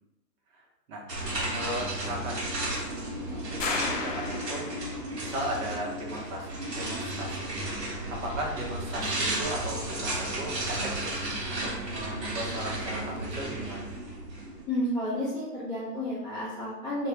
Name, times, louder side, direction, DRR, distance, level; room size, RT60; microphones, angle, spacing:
voice 1, 0.5-1.0 1.4-2.5 3.3-4.7 5.1-7.5 8.1-11.2 11.5-13.8, equal, 55° right, -1 dB, 0.9 m, -37 dB
sound 1, 1.1-14.6, right 1 dB, 75° right, 1.0 m, -33 dB
sound 2, 3.6-5.1, left 4 dB, 55° left, 0.5 m, -33 dB
voice 2, 14.7-17.1, left 1 dB, 10° left, -13 dB, 0.6 m, -31 dB
2.4 x 2.1 x 3.1 m, 0.97 s
figure-of-eight pair, 110°, 49 cm